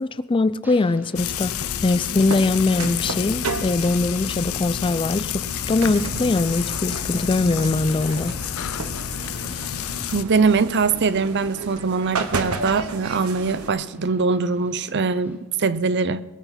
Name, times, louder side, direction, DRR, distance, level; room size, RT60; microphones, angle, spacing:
voice 1, 0.0-5.3 5.7-8.3, left 3 dB, 25° left, 16 dB, 0.4 m, -22 dB
sound 1, 0.6-15.4, equal, 10° right, 1.9 m, -49 dB
Frying (food), 1.2-10.2, left 9 dB, 70° left, 0.6 m, -29 dB
sound 2, 2.1-13.7, right 3 dB, 90° right, 1.3 m, -34 dB
voice 2, 10.1-16.2, right 4 dB, 55° right, 15 dB, 0.6 m, -22 dB
21.5 x 8.1 x 5.7 m, 1.2 s
head